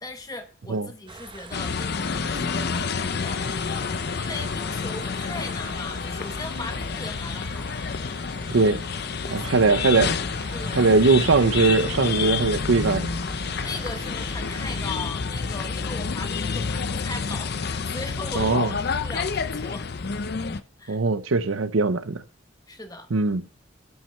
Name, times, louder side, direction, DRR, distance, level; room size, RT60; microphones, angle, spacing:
voice 1, 0.0-8.3 9.2-9.6 10.5-11.1 13.6-19.9 20.8-21.0 22.7-23.1, left 2 dB, 20° left, 1.2 m, -38 dB
sound 1, 1.1-14.9, right 2 dB, 25° right, 0.8 m, -42 dB
sound 2, 1.5-20.6, left 5 dB, 55° left, 0.6 m, -29 dB
voice 2, 9.3-10.1 10.7-13.1 18.4-18.7 20.9-22.2 23.1-23.4, right 3 dB, 85° right, 0.7 m, -20 dB
12.0 x 6.1 x 4.4 m
head